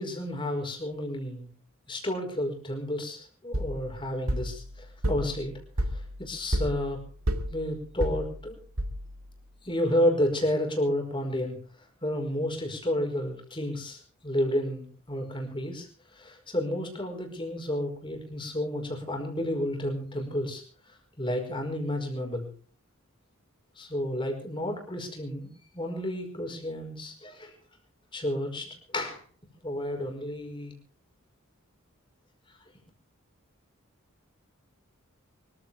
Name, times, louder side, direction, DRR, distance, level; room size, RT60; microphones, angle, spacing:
voice 1, 0.0-1.5 1.9-5.5 5.9-7.0 7.5-8.6 9.6-11.5 12.0-15.9 16.1-20.6 21.2-22.5 23.8-27.5 28.1-29.2 29.6-30.7, left 1 dB, 20° left, 3 dB, 5.1 m, -31 dB
sound 1, 3.5-9.3, equal, 85° right, 2.5 m, -32 dB
24.5 x 14.5 x 3.6 m, 0.42 s
head